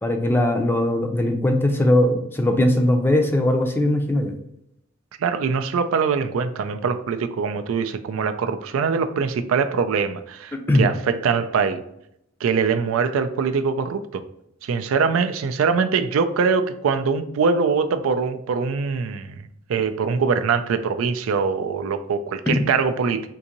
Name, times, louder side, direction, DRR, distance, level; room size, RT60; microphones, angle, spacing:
voice 1, 0.0-4.3 10.5-10.9 22.5-22.6, left 1 dB, 10° left, 4 dB, 0.4 m, -20 dB
voice 2, 5.2-11.8 12.4-14.2 14.6-19.4 19.7-23.3, right 5 dB, 80° right, 9 dB, 0.4 m, -23 dB
3.7 x 2.6 x 2.8 m, 0.76 s
head